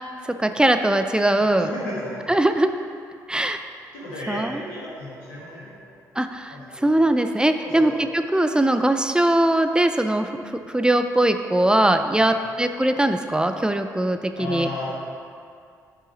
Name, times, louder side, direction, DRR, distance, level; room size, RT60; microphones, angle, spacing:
voice 1, 0.4-1.7 2.3-2.7 3.3-3.6 4.3-4.6 6.2-14.7, right 1 dB, 10° right, 7 dB, 0.5 m, -21 dB
voice 2, 1.4-2.2 3.9-5.9 6.5-6.8 7.6-7.9 12.2-12.3 14.4-14.9, left 1 dB, 75° left, -7 dB, 2.1 m, -34 dB
12.0 x 5.6 x 3.1 m, 2.3 s
figure-of-eight pair, 40°, 9 cm